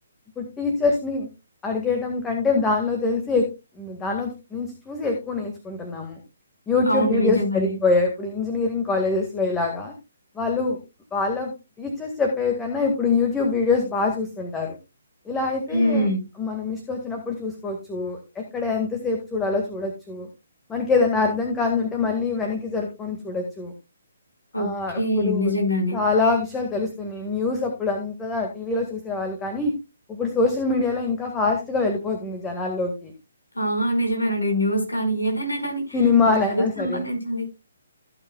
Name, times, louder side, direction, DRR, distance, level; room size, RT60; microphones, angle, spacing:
voice 1, 0.4-1.3 1.6-3.5 3.8-6.2 6.7-9.9 10.4-10.8 11.1-11.5 11.8-14.8 15.3-16.1 16.4-20.3 20.7-23.7 24.6-25.5 25.9-29.7 30.1-33.1 35.9-37.0, left 4 dB, 10° left, 2 dB, 1.8 m, -24 dB
voice 2, 6.9-7.7 15.7-16.3 24.5-26.0 33.5-36.0 36.2-37.5, equal, 80° left, 3 dB, 5.2 m, -24 dB
16.0 x 8.4 x 2.3 m, 0.26 s
figure-of-eight pair, 135°, 0 cm